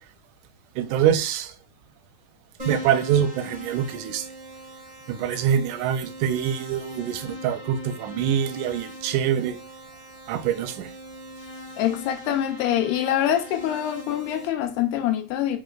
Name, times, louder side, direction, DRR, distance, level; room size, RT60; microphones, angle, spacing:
voice 1, 0.8-1.5 2.7-4.3 5.1-9.6 10.3-10.9, right 9 dB, 80° right, 1.9 m, -25 dB
Keyboard (musical), 2.6-14.5, equal, 30° right, 0.6 m, -40 dB
voice 2, 11.8-15.6, left 11 dB, 90° left, 2.1 m, -25 dB
5.2 x 3.2 x 2.2 m
omnidirectional pair, 3.5 m